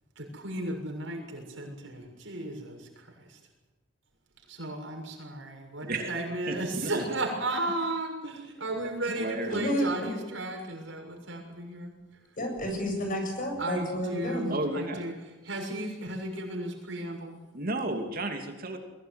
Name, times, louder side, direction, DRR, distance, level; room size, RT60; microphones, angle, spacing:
voice 1, 0.2-2.8 4.5-11.9 13.6-15.1 15.5-17.4, right 2 dB, 85° right, 2 dB, 6.9 m, -34 dB
voice 2, 5.8-7.2 9.0-9.7 14.5-15.0 17.5-18.8, right 2 dB, 50° right, 4 dB, 2.8 m, -33 dB
voice 3, 9.5-10.1 12.4-14.5, equal, 45° left, 3 dB, 7.6 m, -30 dB
23.0 x 17.0 x 9.6 m, 1.1 s
head